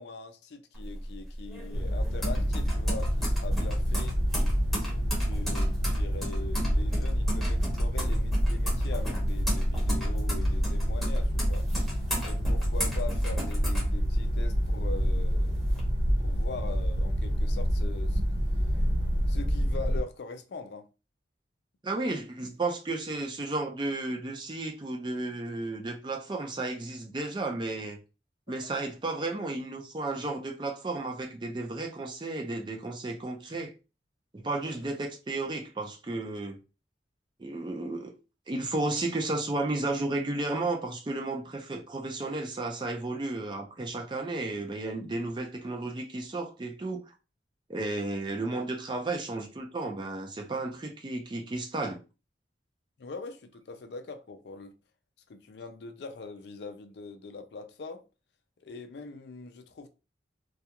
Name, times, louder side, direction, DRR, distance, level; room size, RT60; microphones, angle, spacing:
voice 1, 0.0-4.2 4.7-11.7 12.2-15.6 16.2-18.3 19.3-20.9 21.9-22.0 22.4-22.5 34.8-35.0 53.0-54.7 55.3-58.1 58.6-59.9, left 4 dB, 65° left, 0.4 m, -42 dB
sound 1, 0.7-14.6 15.0-15.8, equal, ahead, 0.8 m, -37 dB
sound 2, 1.7-20.0, equal, 75° right, 0.9 m, -27 dB
voice 2, 21.8-28.0 28.5-33.7 34.3-36.6 37.4-38.1 38.5-47.1 47.7-52.0, right 2 dB, 25° right, 0.4 m, -33 dB
2.3 x 2.3 x 2.8 m
head